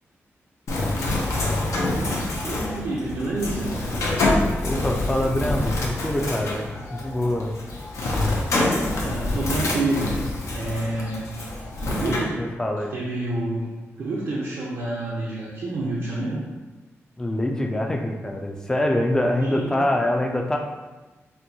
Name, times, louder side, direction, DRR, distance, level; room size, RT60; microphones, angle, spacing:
Bird, 0.7-12.2, left 2 dB, 80° left, 0.6 m, -26 dB
voice 1, 2.4-3.8 8.8-10.2 10.5-11.3 11.8-12.4 12.9-16.4 19.4-19.8, right 2 dB, 85° right, -6 dB, 0.6 m, -28 dB
voice 2, 4.6-7.6 12.4-12.9 17.2-20.6, left 1 dB, 10° left, 1 dB, 0.3 m, -24 dB
4.3 x 2.2 x 2.7 m, 1.2 s
wide cardioid pair, 145°, 5 cm